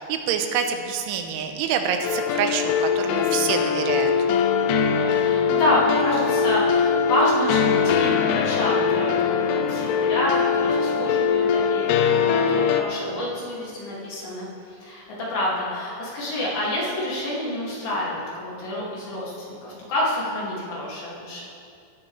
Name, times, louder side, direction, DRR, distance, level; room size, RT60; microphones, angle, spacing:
voice 1, 0.0-4.1, right 7 dB, 85° right, 5 dB, 3.2 m, -26 dB
sound 1, 2.0-12.8, left 6 dB, 90° left, 3.1 m, -22 dB
voice 2, 5.1-21.4, left 1 dB, 55° left, -7 dB, 4.1 m, -28 dB
16.0 x 12.0 x 3.3 m, 2.4 s
omnidirectional pair, 5.5 m